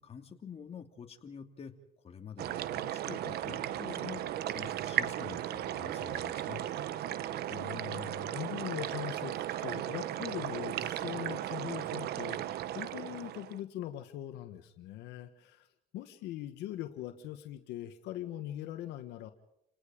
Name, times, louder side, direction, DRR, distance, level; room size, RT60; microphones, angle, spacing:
voice 1, 0.0-1.7 2.0-6.6, left 7 dB, 35° left, 3 dB, 2.8 m, -47 dB
sound 1, 2.4-13.6, right 12 dB, 70° right, 1.0 m, -36 dB
sound 2, 3.3-8.1, right 1 dB, 55° right, 7.4 m, -55 dB
voice 2, 7.5-15.7 15.9-19.3, left 13 dB, 85° left, 7 dB, 1.6 m, -41 dB
29.0 x 19.0 x 5.2 m, 0.78 s
cardioid pair, 110°, 17 cm